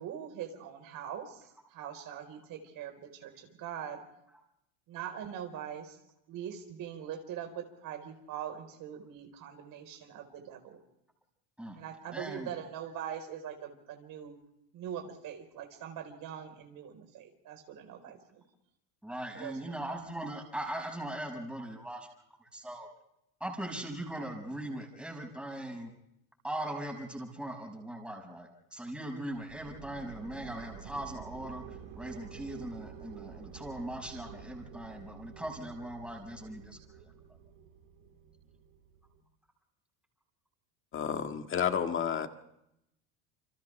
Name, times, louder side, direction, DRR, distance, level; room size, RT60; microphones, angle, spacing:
voice 1, 0.0-4.0 4.9-6.0 6.3-10.8 11.8-14.3 14.7-18.4 19.3-19.6, right 9 dB, 55° right, 5 dB, 4.6 m, -42 dB
voice 2, 12.1-12.5 19.0-22.1 22.4-22.9 23.4-25.9 26.4-37.1, right 1 dB, 5° right, 1 dB, 6.1 m, -40 dB
sound 1, 29.3-39.2, right 8 dB, 85° right, 4.2 m, -49 dB
voice 3, 40.9-42.3, left 8 dB, 30° left, 6 dB, 1.8 m, -31 dB
29.0 x 26.0 x 3.5 m, 0.82 s
supercardioid pair, 115°, 38 cm